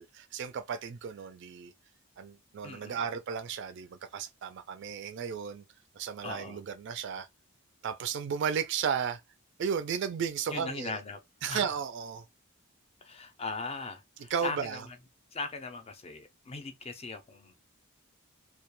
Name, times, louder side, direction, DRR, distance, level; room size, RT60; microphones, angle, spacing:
voice 1, 0.0-1.7 2.2-5.6 6.0-7.3 7.8-9.2 9.6-11.0 11.4-12.2 14.3-14.8, right 7 dB, 55° right, 0.3 m, -34 dB
voice 2, 2.6-3.0 6.2-6.6 10.5-11.2 11.5-11.7 13.0-15.0 15.3-17.5, left 3 dB, 30° left, 0.4 m, -39 dB
2.2 x 2.1 x 2.9 m
head